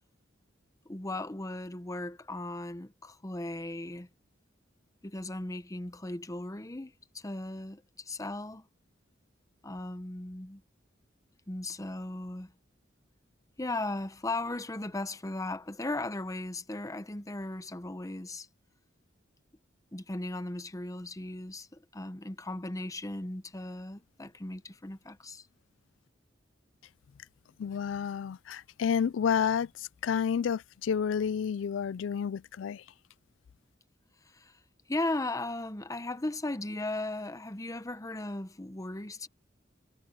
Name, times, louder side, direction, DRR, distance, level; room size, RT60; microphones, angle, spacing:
voice 1, 0.9-4.1 5.0-8.7 9.6-10.6 11.5-12.5 13.6-18.5 19.9-25.5 34.3-34.5 34.9-39.3, left 2 dB, 20° left, 0.9 m, -37 dB
voice 2, 27.6-32.8, left 7 dB, 85° left, 0.4 m, -30 dB
head